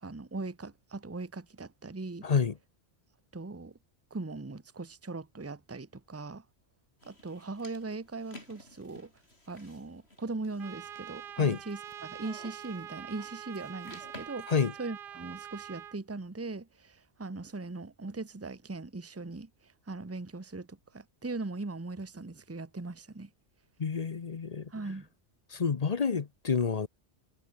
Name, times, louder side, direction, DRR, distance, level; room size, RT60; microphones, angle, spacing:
voice 1, 0.0-2.3 3.3-3.7 4.1-6.4 7.0-9.1 9.5-14.5 14.8-23.3 24.7-25.1, right 3 dB, 15° right, 0.9 m, -40 dB
voice 2, 2.2-2.5 11.4-11.6 14.5-14.7 23.8-24.7 25.5-26.9, left 6 dB, 40° left, 0.8 m, -28 dB
sound 1, 7.0-14.3, left 1 dB, 65° left, 7.9 m, -54 dB
Trumpet, 10.6-16.0, right 10 dB, 60° right, 0.8 m, -45 dB
omnidirectional pair, 1.2 m